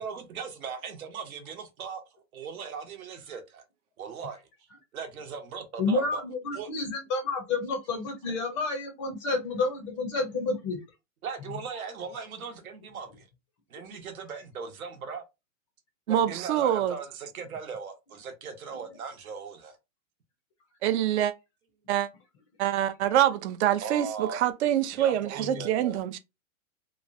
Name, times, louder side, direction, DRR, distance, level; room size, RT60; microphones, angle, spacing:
voice 1, 0.0-2.0 2.3-3.6 4.0-4.4 4.9-6.2 6.5-6.7 11.2-13.3 13.7-15.2 16.1-19.8 23.8-24.4 24.9-26.0, right 6 dB, 90° right, 1.0 m, -38 dB
voice 2, 5.8-10.8 25.4-25.5, left 3 dB, 25° left, 0.4 m, -30 dB
voice 3, 16.1-16.9 20.8-21.3 21.9-22.1 22.6-26.2, right 11 dB, 55° right, 0.4 m, -25 dB
3.0 x 2.1 x 2.5 m
hypercardioid pair, 145°, 41 cm